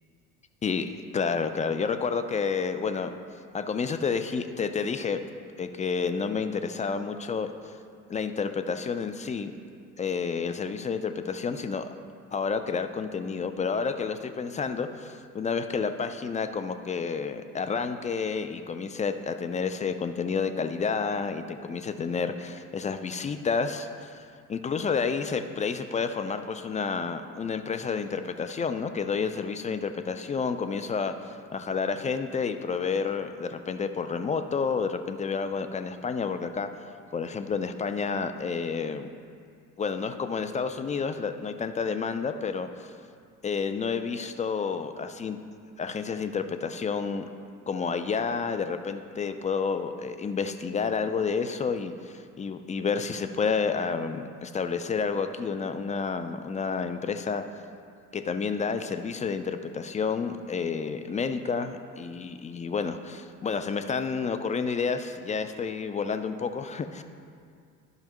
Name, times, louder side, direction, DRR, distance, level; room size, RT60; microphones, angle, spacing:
voice 1, 0.6-3.1 3.5-5.2 5.6-7.5 8.1-9.5 10.0-11.9 12.3-24.2 24.5-31.1 31.5-36.7 37.1-39.1 39.8-42.9 43.4-45.4 45.8-47.3 47.7-57.4 58.1-67.0, left 5 dB, 20° left, 9 dB, 0.3 m, -30 dB
12.0 x 5.3 x 3.0 m, 2.3 s
hypercardioid pair, 60°, 44 cm